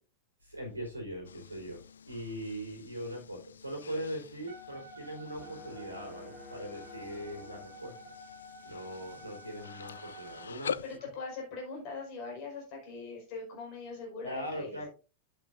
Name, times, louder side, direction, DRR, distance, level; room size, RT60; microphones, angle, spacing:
voice 1, 0.4-7.9 8.6-10.8 14.2-14.9, equal, 90° left, 1 dB, 3.9 m, -40 dB
sound 1, 1.2-11.0, left 7 dB, 70° left, 0.3 m, -45 dB
Wind instrument woodwind instrument, 4.5-10.5, equal, 60° right, 3.4 m, -50 dB
sound 2, 5.4-8.3, left 1 dB, 5° right, 1.5 m, -53 dB
voice 2, 10.8-14.9, left 3 dB, 40° left, -1 dB, 5.5 m, -41 dB
11.0 x 8.5 x 2.7 m, 0.32 s
figure-of-eight pair, 90°, 0 cm